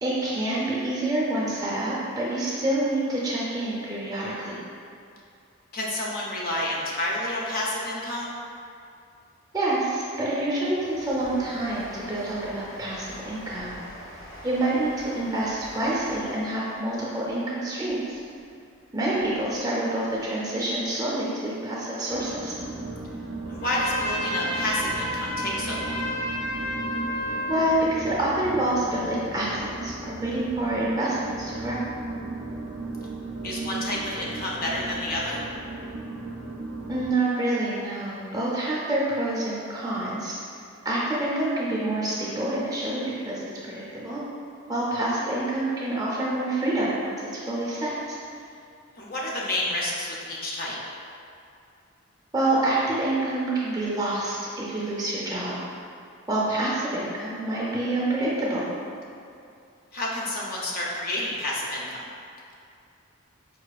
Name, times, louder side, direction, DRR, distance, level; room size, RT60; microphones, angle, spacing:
voice 1, 0.0-4.6 9.5-13.7 14.4-18.1 18.9-22.5 27.5-31.9 36.9-40.3 40.8-44.2 44.7-48.2 52.3-55.5 56.3-58.7, right 1 dB, 15° right, -6 dB, 0.5 m, -27 dB
voice 2, 5.7-8.3 23.5-26.0 33.4-35.4 49.0-50.8 59.9-62.0, left 1 dB, 40° left, -4 dB, 0.5 m, -29 dB
Train, 9.4-19.6 20.0-20.9 21.2-21.3, equal, 65° left, 1.2 m, -46 dB
sound 1, 22.1-37.1, right 3 dB, 70° right, 0.5 m, -36 dB
Trumpet, 23.6-27.9, left 1 dB, 85° left, 1.3 m, -31 dB
4.9 x 2.3 x 2.3 m, 2.5 s
head